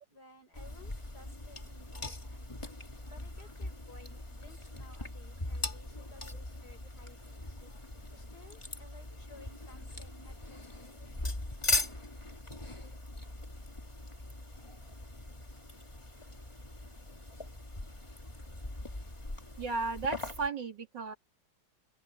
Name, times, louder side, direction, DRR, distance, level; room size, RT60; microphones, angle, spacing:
voice 1, 0.1-2.5 3.0-7.6 8.1-11.2, left 2 dB, 60° left, 6.2 m, -57 dB
sound 1, 0.5-20.5, left 2 dB, 15° left, 2.0 m, -40 dB
voice 2, 19.6-21.1, right 4 dB, 75° right, 3.2 m, -34 dB
open air
omnidirectional pair, 2.0 m